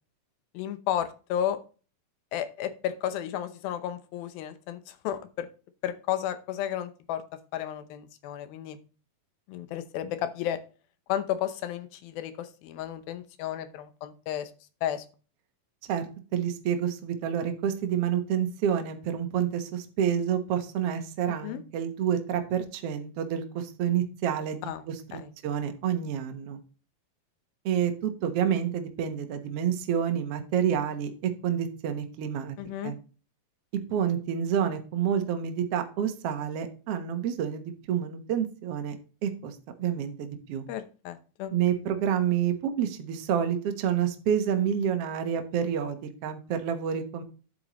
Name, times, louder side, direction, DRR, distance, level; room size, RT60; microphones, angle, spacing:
voice 1, 0.5-1.6 2.3-5.5 5.8-7.2 7.5-8.8 9.5-10.6 11.1-14.5 14.8-15.1 21.4-21.6 24.6-24.8 25.1-25.3 32.6-32.9 40.7-41.5, left 10 dB, 85° left, 10 dB, 2.7 m, -33 dB
voice 2, 15.9-25.0 25.4-26.6 27.6-32.6 32.8-33.0 33.9-40.7 41.5-47.2, right 9 dB, 60° right, 6 dB, 1.6 m, -28 dB
9.5 x 8.1 x 3.0 m, 0.36 s
omnidirectional pair, 4.1 m